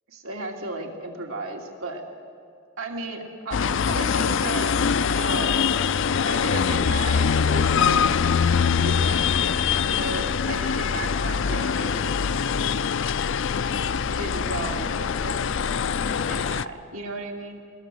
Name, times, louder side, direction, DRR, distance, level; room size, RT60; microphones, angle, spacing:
voice 1, 0.1-2.0 2.8-4.7 5.0-5.7 6.2-8.0 8.8-9.4 9.8-12.1 14.1-15.4 16.3-17.6, right 2 dB, 85° right, 1 dB, 3.0 m, -34 dB
sound 1, 3.5-16.6, left 6 dB, 60° left, 0.5 m, -23 dB
22.0 x 20.5 x 7.9 m, 2.3 s
head